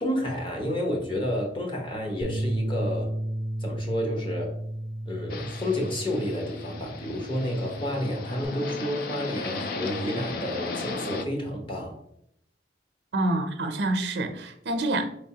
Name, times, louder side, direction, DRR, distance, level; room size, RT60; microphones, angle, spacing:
voice 1, 0.0-3.1 3.6-4.5 5.1-11.9, left 1 dB, 30° left, 0 dB, 0.9 m, -30 dB
Bass guitar, 2.2-8.5, right 1 dB, 25° right, 0.6 m, -33 dB
sound 1, 5.3-11.2, left 3 dB, 55° left, 0.4 m, -36 dB
voice 2, 13.1-15.0, right 2 dB, 75° right, 6 dB, 0.6 m, -27 dB
4.2 x 3.4 x 2.8 m, 0.72 s
head